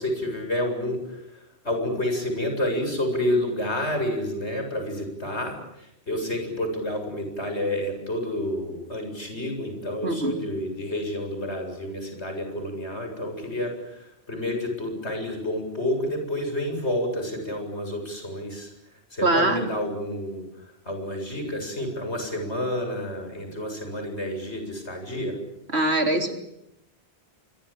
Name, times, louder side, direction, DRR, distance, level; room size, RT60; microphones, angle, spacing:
voice 1, 0.0-18.7 19.1-25.4, left 1 dB, 90° left, 5 dB, 8.2 m, -29 dB
voice 2, 10.0-10.3 19.2-19.7 25.7-26.3, right 2 dB, 75° right, 5 dB, 3.8 m, -22 dB
26.5 x 23.5 x 8.9 m, 0.80 s
omnidirectional pair, 1.1 m